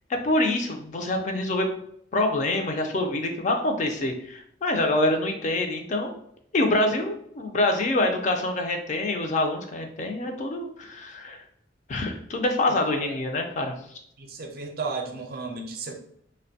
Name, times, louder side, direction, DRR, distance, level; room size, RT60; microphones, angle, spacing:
voice 1, 0.1-1.7 2.1-6.1 6.5-11.4 11.9-13.7, left 2 dB, 40° left, 4 dB, 0.4 m, -26 dB
voice 2, 12.7-13.2 14.2-15.9, right 4 dB, 55° right, 3 dB, 0.4 m, -34 dB
2.5 x 2.1 x 2.7 m, 0.67 s
head